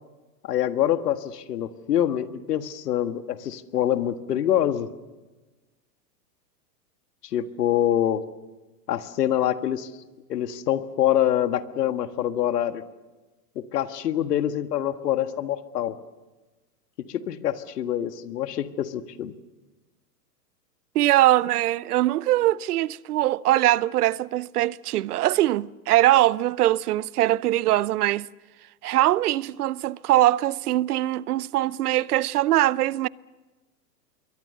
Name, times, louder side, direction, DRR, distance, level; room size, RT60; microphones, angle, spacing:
voice 1, 0.4-4.9 7.3-8.2 8.9-9.9 10.3-12.8 13.5-16.0 17.1-19.3, left 11 dB, 75° left, 1.7 m, -25 dB
voice 2, 20.9-28.3 28.8-33.1, right 15 dB, 65° right, 0.7 m, -22 dB
27.0 x 23.0 x 6.8 m
hypercardioid pair, 115°, 48 cm